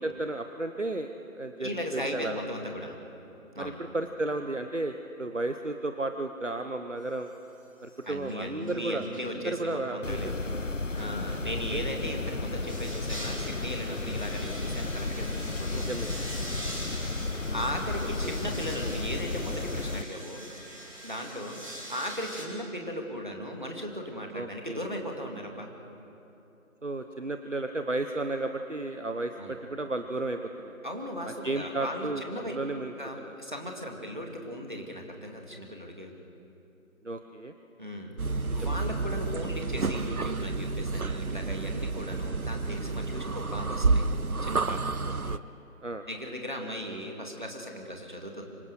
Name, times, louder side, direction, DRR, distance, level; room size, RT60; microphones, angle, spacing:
voice 1, 0.0-2.4 3.6-7.3 7.8-9.0 9.4-10.6 11.7-11.8 15.7-16.1 18.2-18.4 24.3-24.9 26.8-30.8 31.3-33.3 37.0-37.5 38.5-38.8 45.0-45.4 45.8-46.0, right 2 dB, 60° right, 7 dB, 1.1 m, -33 dB
voice 2, 1.6-3.0 3.5-3.8 8.0-10.4 10.9-16.4 17.5-20.4 21.0-21.6 21.9-25.7 29.4-29.6 30.8-32.5 33.0-36.1 37.8-44.0 44.4-44.9 46.1-48.4, equal, 35° right, 1 dB, 2.4 m, -37 dB
sound 1, 7.3-7.6 7.9-9.3 10.9-11.9 12.6-22.4, equal, 25° left, 3.4 m, -43 dB
sound 2, 10.0-20.0, left 2 dB, 60° left, 0.8 m, -33 dB
sound 3, 38.2-45.4, right 3 dB, 85° right, 0.9 m, -30 dB
25.5 x 23.0 x 6.6 m, 3.0 s
figure-of-eight pair, 175°, 42 cm